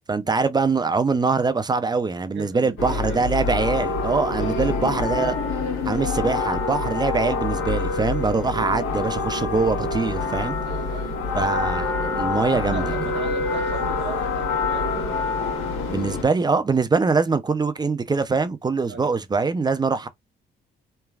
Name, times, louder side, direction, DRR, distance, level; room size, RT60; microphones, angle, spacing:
voice 1, 0.1-5.4 5.8-10.6 11.3-13.0 15.9-20.1, right 4 dB, 20° right, 0.4 m, -23 dB
voice 2, 2.3-3.2 4.4-5.0 10.6-11.5 12.4-15.1 18.9-19.1, right 5 dB, 65° right, 1.2 m, -38 dB
sound 1, 2.8-16.2, left 3 dB, 85° left, 1.3 m, -26 dB
3.2 x 2.3 x 2.3 m
cardioid pair, 90°, 20 cm